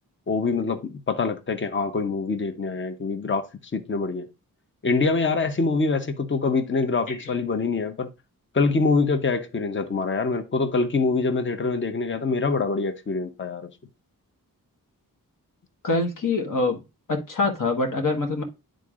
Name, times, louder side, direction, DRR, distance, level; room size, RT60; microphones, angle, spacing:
voice 1, 0.3-3.5 3.7-4.3 4.8-8.1 8.5-13.7, left 4 dB, 35° left, 0.8 m, -25 dB
voice 2, 15.8-16.8 17.1-18.4, left 3 dB, 65° left, 1.4 m, -25 dB
10.5 x 3.8 x 2.5 m
wide cardioid pair, 100°, 35 cm